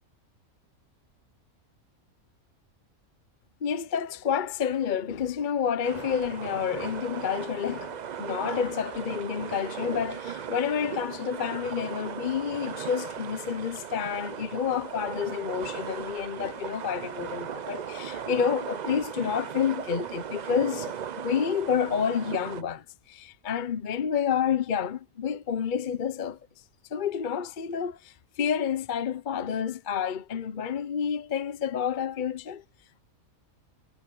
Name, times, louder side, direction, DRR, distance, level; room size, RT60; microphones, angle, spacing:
voice 1, 3.6-26.4 26.9-32.6, left 7 dB, 40° left, 0.9 m, -29 dB
sound 1, 5.8-22.6, right 8 dB, 60° right, 0.4 m, -37 dB
omnidirectional pair, 1.5 m